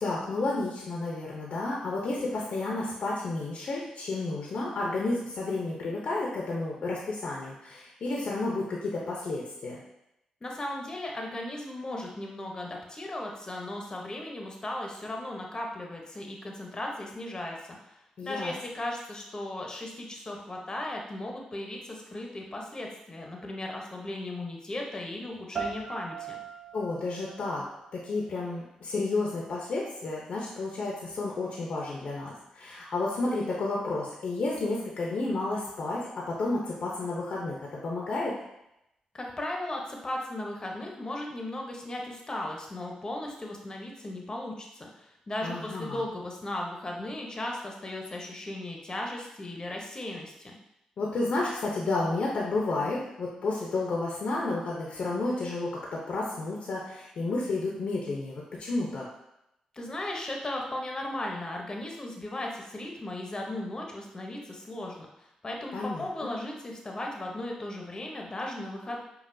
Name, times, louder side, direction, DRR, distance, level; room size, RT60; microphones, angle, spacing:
voice 1, 0.0-9.8 18.2-18.5 26.7-27.6 27.9-38.3 45.4-46.0 51.0-59.0 65.7-66.3, left 2 dB, 65° left, -3 dB, 0.7 m, -31 dB
voice 2, 10.4-26.4 39.1-50.5 59.7-69.0, left 1 dB, 30° left, 0 dB, 0.8 m, -36 dB
sound 1, 25.6-28.5, right 5 dB, 45° right, 0.6 m, -40 dB
5.3 x 2.4 x 2.6 m, 0.85 s
cardioid pair, 60°, 2 cm